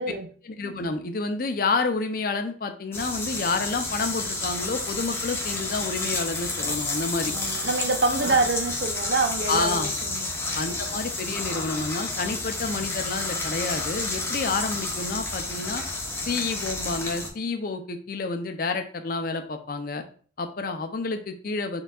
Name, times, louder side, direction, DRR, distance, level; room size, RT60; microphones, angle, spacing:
voice 1, 0.4-7.3 8.2-8.4 9.5-9.9 10.5-15.8 16.3-20.0 20.4-21.8, left 3 dB, 55° left, 0.6 m, -29 dB
sound 1, 2.9-17.3, left 2 dB, 15° left, 0.9 m, -30 dB
voice 2, 7.3-10.6, right 3 dB, 70° right, 0.6 m, -26 dB
4.3 x 3.9 x 2.4 m
head